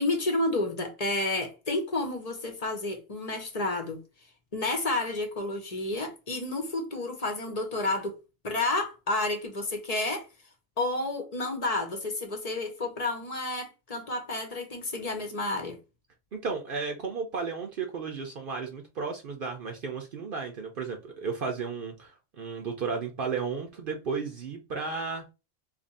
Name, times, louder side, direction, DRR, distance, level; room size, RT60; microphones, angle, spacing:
voice 1, 0.0-4.0 4.5-8.2 8.4-10.3 10.8-15.8, left 2 dB, 40° left, 0.8 m, -30 dB
voice 2, 16.3-25.2, right 5 dB, 60° right, 0.8 m, -34 dB
2.8 x 2.6 x 3.9 m
omnidirectional pair, 1.1 m